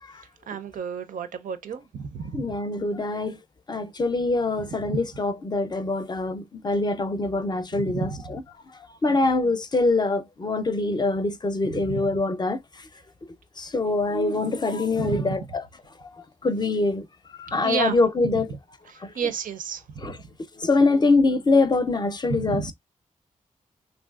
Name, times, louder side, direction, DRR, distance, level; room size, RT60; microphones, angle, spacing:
voice 1, 0.5-2.6 4.6-5.0 7.7-8.3 9.1-9.3 11.6-12.2 14.9-15.5 17.6-18.0 18.3-18.4 18.9-20.2 22.3-22.7, right 6 dB, 85° right, 0.5 m, -32 dB
voice 2, 2.3-3.4 3.7-8.1 9.0-12.6 13.6-15.4 16.4-17.0 17.4-18.5 20.0-20.1 20.6-22.7, left 3 dB, 30° left, 0.5 m, -24 dB
3.2 x 2.6 x 2.3 m
cardioid pair, 75°, 14 cm